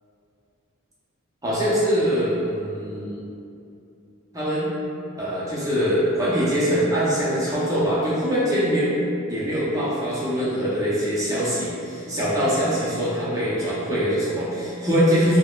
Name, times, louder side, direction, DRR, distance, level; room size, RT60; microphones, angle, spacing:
voice 1, 1.4-3.3 4.3-4.7 5.2-8.9 9.3-15.4, equal, 15° right, -9 dB, 0.6 m, -23 dB
4.7 x 2.1 x 2.4 m, 2.6 s
head